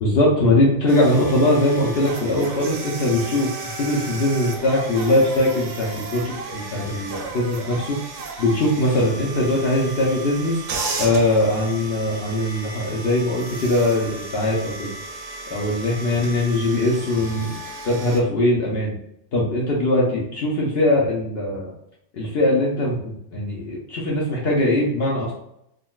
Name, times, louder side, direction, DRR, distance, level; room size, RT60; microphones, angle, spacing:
voice 1, 0.0-3.5 3.8-8.0 8.4-10.6 11.0-14.9 15.5-17.6 17.8-19.0 19.3-21.7 22.1-25.3, left 1 dB, 60° left, -4 dB, 0.7 m, -21 dB
sound 1, 0.9-18.2, right 3 dB, 75° right, 0.9 m, -34 dB
3.6 x 2.1 x 2.3 m, 0.79 s
omnidirectional pair, 1.4 m